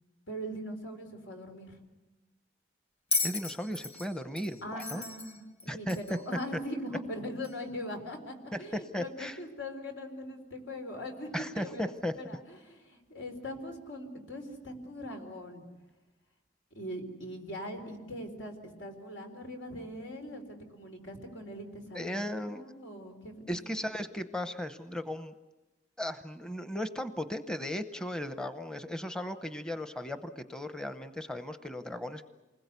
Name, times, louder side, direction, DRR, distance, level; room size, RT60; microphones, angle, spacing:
voice 1, 0.3-1.8 4.6-15.6 16.7-23.4, equal, 85° left, 4 dB, 4.1 m, -41 dB
Bell, 3.1-6.3 7.4-7.6, left 3 dB, 30° left, 1.2 m, -35 dB
voice 2, 3.2-5.0 5.7-6.0 8.9-9.4 11.3-12.1 21.9-22.6 23.5-25.3 26.0-32.3, left 1 dB, 5° left, 9 dB, 0.7 m, -36 dB
28.5 x 20.5 x 8.2 m, 1.1 s
head